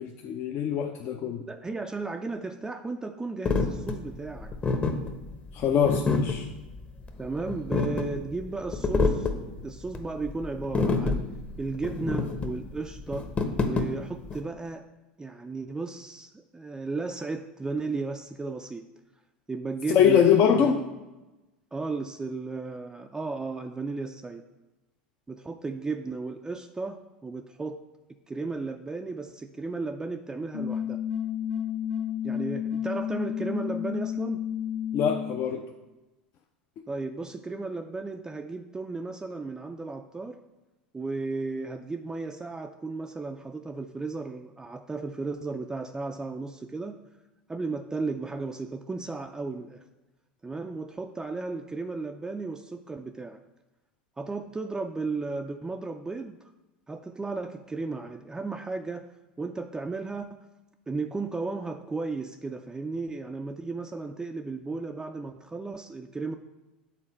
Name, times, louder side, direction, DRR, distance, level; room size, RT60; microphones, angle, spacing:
voice 1, 0.0-1.4 5.5-6.5 19.9-20.8 34.9-35.6, left 8 dB, 45° left, 4 dB, 0.5 m, -23 dB
voice 2, 1.2-4.5 7.2-9.3 9.6-11.2 11.6-13.3 13.6-14.9 15.2-18.8 19.5-20.8 21.7-24.4 25.3-27.8 28.3-31.0 32.2-34.4 36.9-40.4 40.9-47.0 47.5-49.8 50.4-53.4 54.2-56.5 56.9-59.1 59.4-60.4 60.9-66.4, right 3 dB, 10° right, 5 dB, 0.4 m, -34 dB
sound 1, 3.4-14.4, left 3 dB, 25° left, 0.9 m, -28 dB
sound 2, 30.5-35.5, left 9 dB, 80° left, 1.4 m, -31 dB
7.4 x 3.9 x 4.4 m, 1.1 s
hypercardioid pair, 80°, 5 cm